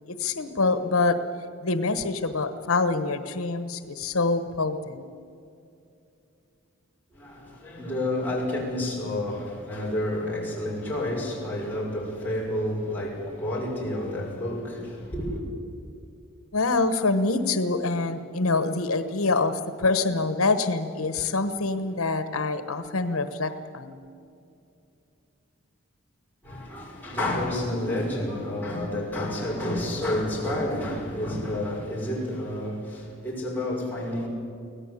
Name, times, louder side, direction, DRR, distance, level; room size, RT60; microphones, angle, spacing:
voice 1, 0.1-1.2 1.6-5.1 16.5-24.0, left 3 dB, 85° left, 1.2 m, -25 dB
voice 2, 7.1-15.4 26.4-34.3, left 1 dB, 10° left, 5.9 m, -30 dB
24.0 x 17.5 x 8.3 m
head